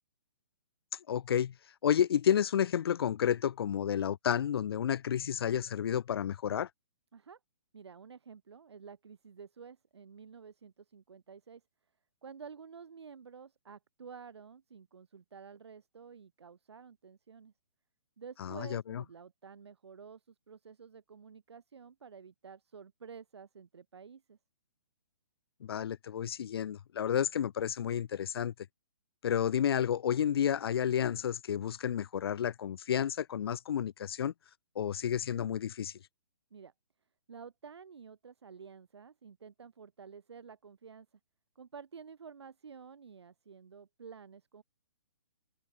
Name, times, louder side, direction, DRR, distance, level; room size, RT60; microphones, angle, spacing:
voice 1, 1.1-1.5 1.8-6.7 18.4-19.0 25.6-28.5 29.2-34.3 34.8-35.9, left 9 dB, 60° left, 0.6 m, -31 dB
voice 2, 7.7-11.6 12.2-17.5 18.2-24.4 36.5-36.7 37.3-41.1 41.5-44.6, right 6 dB, 75° right, 2.6 m, -51 dB
hypercardioid pair, 135°, 14 cm